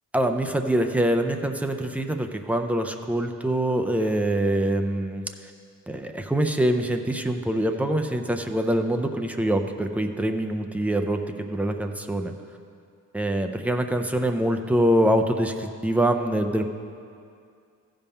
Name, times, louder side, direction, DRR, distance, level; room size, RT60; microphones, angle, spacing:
voice 1, 0.1-5.2 5.9-12.3 13.1-16.6, right 1 dB, 5° right, 4 dB, 0.4 m, -24 dB
14.0 x 5.4 x 5.5 m, 2.4 s
wide cardioid pair, 165°, 32 cm